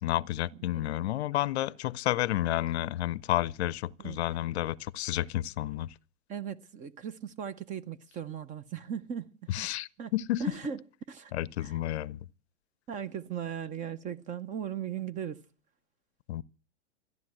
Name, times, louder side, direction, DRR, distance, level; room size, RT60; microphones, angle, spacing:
voice 1, 0.0-5.9 9.5-10.4 11.3-12.2 16.3-16.4, left 14 dB, 55° left, 0.6 m, -31 dB
voice 2, 6.3-9.3 9.6-9.7 10.0-10.1 10.4-10.8 11.1-11.3 11.6-11.8 12.9-15.4, right 8 dB, 20° right, 0.6 m, -37 dB
14.5 x 10.5 x 7.7 m
hypercardioid pair, 120°, 38 cm